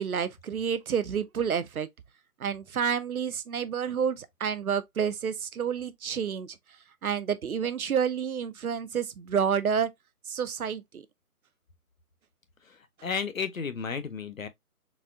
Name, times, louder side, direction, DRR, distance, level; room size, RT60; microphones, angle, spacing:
voice 1, 0.0-1.9 2.4-6.6 7.0-9.9 10.3-11.0, right 7 dB, 65° right, 0.6 m, -29 dB
voice 2, 13.0-14.5, left 6 dB, 60° left, 0.7 m, -32 dB
4.1 x 2.3 x 2.4 m
figure-of-eight pair, 175°, 46 cm